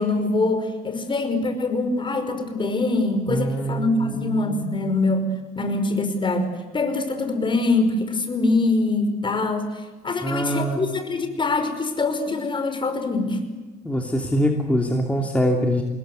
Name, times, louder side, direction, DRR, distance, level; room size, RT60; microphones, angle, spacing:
voice 1, 0.0-9.7 10.0-13.4, left 2 dB, 30° left, 7 dB, 5.3 m, -24 dB
voice 2, 3.3-4.7 10.2-10.8 13.8-15.8, equal, 10° left, 1 dB, 3.0 m, -24 dB
27.5 x 20.5 x 8.0 m, 1.3 s
cardioid pair, 110°, 17 cm